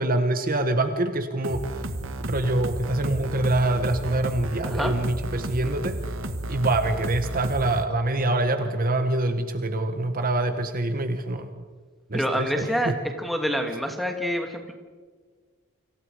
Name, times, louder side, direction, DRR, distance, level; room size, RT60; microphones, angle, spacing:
voice 1, 0.0-1.7 2.2-6.0 6.5-11.6 12.1-12.9, right 2 dB, 40° right, 7 dB, 1.4 m, -25 dB
sound 1, 1.4-7.8, right 1 dB, 65° right, 1.9 m, -32 dB
voice 2, 12.1-12.9 13.2-14.7, equal, ahead, 4 dB, 2.6 m, -27 dB
29.5 x 26.5 x 5.1 m, 1.5 s
head